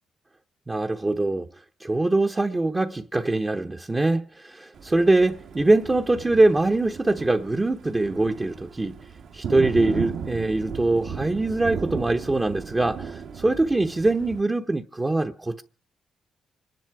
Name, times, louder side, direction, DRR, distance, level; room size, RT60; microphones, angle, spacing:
voice 1, 0.7-1.5 1.8-9.0 9.3-15.6, right 2 dB, 20° right, 0.9 m, -23 dB
Thunder, 4.7-14.4, right 6 dB, 65° right, 1.6 m, -36 dB
25.5 x 10.5 x 4.7 m
cardioid pair, 90°, 0 cm